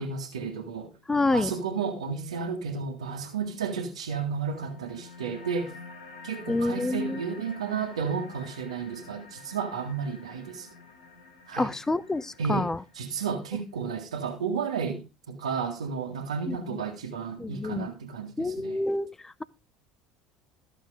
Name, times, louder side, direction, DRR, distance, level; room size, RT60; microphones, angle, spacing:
voice 1, 0.0-0.9 1.3-5.7 6.2-10.7 11.5-11.7 12.4-12.7 12.9-18.8, right 6 dB, 80° right, 1.9 m, -32 dB
voice 2, 1.1-1.5 6.5-7.2 11.5-12.8 16.5-16.8 17.4-17.9 18.4-19.4, left 2 dB, 15° left, 0.9 m, -28 dB
sound 1, 4.5-13.5, left 3 dB, 80° left, 3.5 m, -48 dB
14.5 x 6.8 x 4.9 m
figure-of-eight pair, 65°, 3 cm